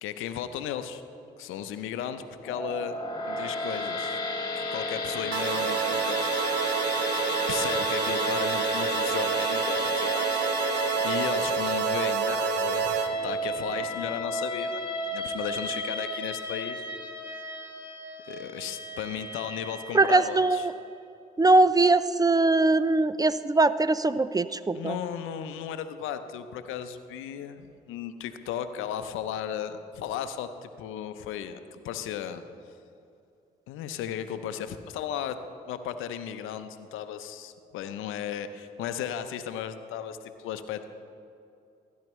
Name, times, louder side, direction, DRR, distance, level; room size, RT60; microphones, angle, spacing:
voice 1, 0.0-1.0 1.4-2.9 3.3-4.2 4.7-6.4 6.7-10.3 10.7-14.8 15.1-16.9 18.3-20.7 24.7-32.4 33.7-35.4 35.7-40.8, left 9 dB, 75° left, 10 dB, 0.7 m, -35 dB
sound 1, 2.4-20.7, left 1 dB, 20° left, 2.1 m, -33 dB
sound 2, 5.3-13.1, right 7 dB, 55° right, 0.9 m, -28 dB
voice 2, 19.9-20.7 21.4-25.0, right 2 dB, 20° right, 15 dB, 0.4 m, -21 dB
16.0 x 10.5 x 3.1 m, 2.6 s
hypercardioid pair, 50°, 21 cm